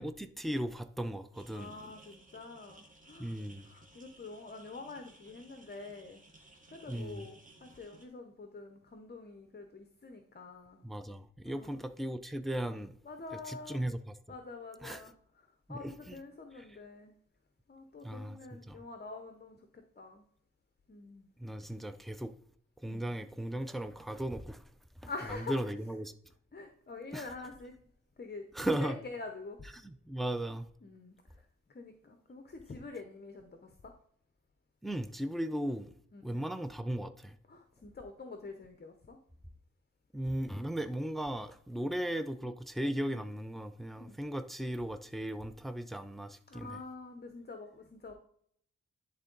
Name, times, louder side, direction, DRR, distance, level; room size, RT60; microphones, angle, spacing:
voice 1, 0.0-1.7 3.2-3.7 6.9-7.3 10.8-12.9 13.5-14.1 14.8-15.0 15.7-16.2 18.0-18.8 21.4-22.3 22.8-24.6 25.0-26.1 27.1-27.3 28.5-29.0 29.8-30.7 34.8-35.9 36.2-37.4 40.1-46.8, right 1 dB, ahead, 0.4 m, -37 dB
sound 1, 1.3-8.1, right 2 dB, 25° right, 1.2 m, -59 dB
voice 2, 1.5-3.4 3.7-6.2 6.7-10.8 11.4-11.8 13.0-13.8 14.3-17.2 17.7-20.3 20.9-21.3 22.8-23.0 25.1-25.7 26.5-27.7 28.2-29.6 30.8-31.2 31.7-33.9 36.1-36.4 37.5-39.2 41.8-41.9 44.0-44.2 46.5-48.1, left 3 dB, 30° left, 0.7 m, -46 dB
10.5 x 3.7 x 3.9 m
wide cardioid pair, 115°, 32 cm